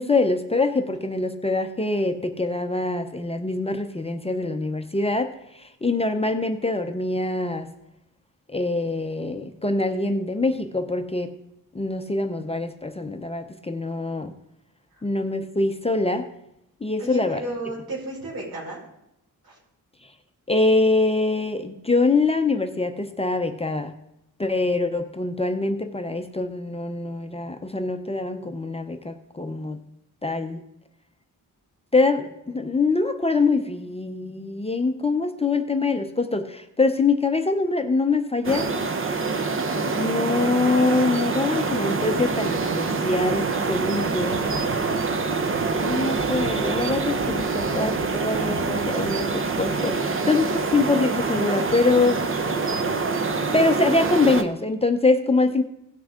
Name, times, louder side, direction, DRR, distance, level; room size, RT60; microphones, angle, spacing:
voice 1, 0.0-7.7 8.5-11.3 11.7-14.3 15.0-16.2 16.8-17.4 20.5-23.9 24.4-29.8 30.2-30.6 31.9-38.7 40.0-44.4 45.7-52.2 53.5-55.6, left 3 dB, 15° left, 6 dB, 0.6 m, -24 dB
voice 2, 17.0-18.8 19.4-19.6 48.5-48.6, right 2 dB, 80° right, -4 dB, 4.7 m, -34 dB
sound 1, 38.4-54.4, right 4 dB, 35° right, 0.8 m, -25 dB
17.0 x 6.1 x 3.6 m, 0.82 s
wide cardioid pair, 140°, 36 cm